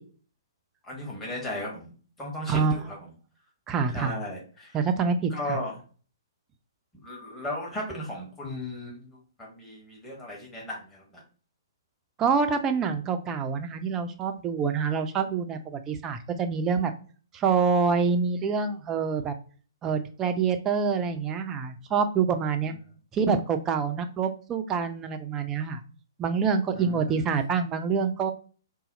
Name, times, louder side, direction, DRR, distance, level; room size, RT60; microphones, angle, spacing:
voice 1, 0.8-1.9 2.2-3.0 3.9-4.8 5.3-5.8 7.0-11.2 26.7-27.3, left 1 dB, 10° left, -3 dB, 1.0 m, -36 dB
voice 2, 2.5-2.8 3.7-4.2 4.7-5.6 12.2-16.9 17.3-19.3 19.8-22.7 23.1-25.8 26.2-28.3, right 5 dB, 20° right, 7 dB, 0.4 m, -26 dB
4.0 x 2.0 x 3.9 m, 0.40 s
figure-of-eight pair, 120°, 2 cm